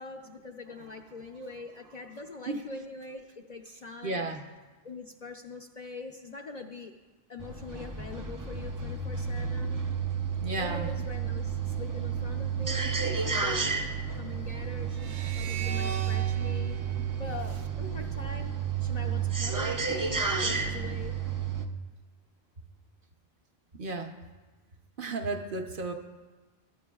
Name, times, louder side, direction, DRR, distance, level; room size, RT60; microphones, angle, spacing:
voice 1, 0.0-4.3 4.8-6.9 7.3-9.8 10.6-12.8 13.1-13.6 14.1-16.8 17.2-18.5 18.8-21.3, left 3 dB, 50° left, 3 dB, 0.5 m, -43 dB
voice 2, 4.0-4.4 10.4-10.9 23.7-24.1 25.0-25.9, right 2 dB, 55° right, 4 dB, 0.9 m, -33 dB
sound 1, 7.4-21.7, right 6 dB, 30° right, 0.3 m, -31 dB
sound 2, 14.9-18.2, right 5 dB, 80° right, 1.0 m, -41 dB
21.0 x 9.5 x 2.3 m, 1.2 s
omnidirectional pair, 1.2 m